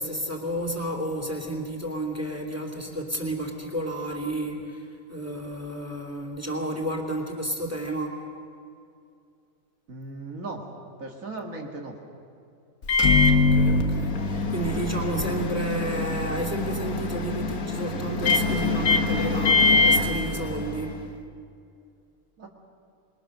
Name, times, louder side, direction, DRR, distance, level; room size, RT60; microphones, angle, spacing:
voice 1, 0.0-8.2 13.3-21.0, right 1 dB, 10° right, 2 dB, 2.8 m, -31 dB
voice 2, 9.9-10.6 11.0-12.0 22.4-22.5, right 2 dB, 70° right, 1 dB, 2.4 m, -37 dB
Microwave oven, 12.8-21.0, left 3 dB, 80° left, 1.9 m, -23 dB
26.5 x 21.5 x 6.7 m, 2.5 s
omnidirectional pair, 1.5 m